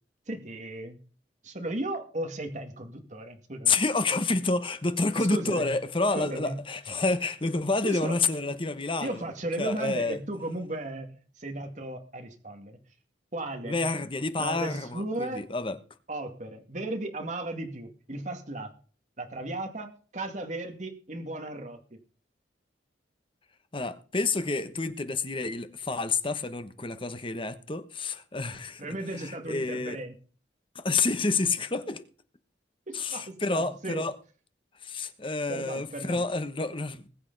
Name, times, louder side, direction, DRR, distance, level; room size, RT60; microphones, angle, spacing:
voice 1, 0.3-1.0 1.4-3.7 5.2-5.7 6.1-6.6 7.8-8.2 9.0-12.8 13.3-13.9 14.4-15.5 16.1-18.7 19.2-21.8 28.8-30.2 32.9-34.0 35.5-36.2, right 1 dB, 40° right, 2.2 m, -35 dB
voice 2, 3.7-9.2 9.6-10.2 13.6-15.8 23.7-28.8 29.1-30.0 30.7-32.1 32.9-34.1 34.8-37.1, left 3 dB, 30° left, 1.1 m, -29 dB
20.5 x 8.3 x 4.0 m
head